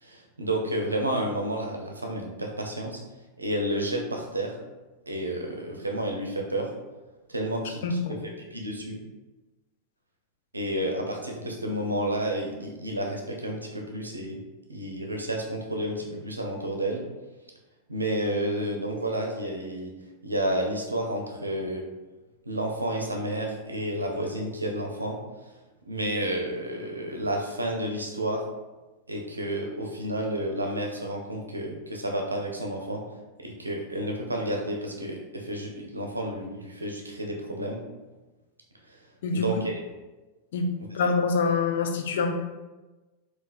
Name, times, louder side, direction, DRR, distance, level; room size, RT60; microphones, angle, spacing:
voice 1, 0.0-3.0 3.4-4.6 5.1-6.7 7.3-8.0 8.5-9.0 10.5-14.4 14.7-17.0 17.9-19.9 20.2-21.8 22.5-25.5 25.9-28.4 29.1-33.0 33.4-37.8 38.9-39.0 39.3-39.8, right 1 dB, 80° right, 1 dB, 0.5 m, -30 dB
voice 2, 7.8-8.2 39.2-39.5 40.5-42.3, left 4 dB, 60° left, 4 dB, 0.4 m, -26 dB
4.0 x 2.4 x 2.5 m, 1.1 s
figure-of-eight pair, 90°, 0 cm